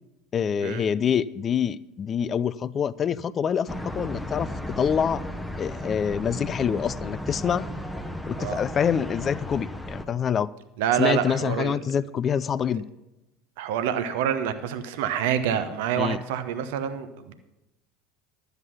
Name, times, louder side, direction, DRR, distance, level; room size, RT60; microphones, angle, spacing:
voice 1, 0.3-4.5 4.8-5.2 5.6-7.7 8.3-10.5 11.0-12.8 16.0-16.2, left 7 dB, 35° left, 18 dB, 0.4 m, -26 dB
sound 1, 3.7-10.1, left 1 dB, ahead, 0.9 m, -34 dB
voice 2, 10.8-11.8 13.6-17.3, right 9 dB, 65° right, 11 dB, 0.8 m, -27 dB
12.5 x 8.1 x 5.8 m, 0.95 s
figure-of-eight pair, 70°, 0 cm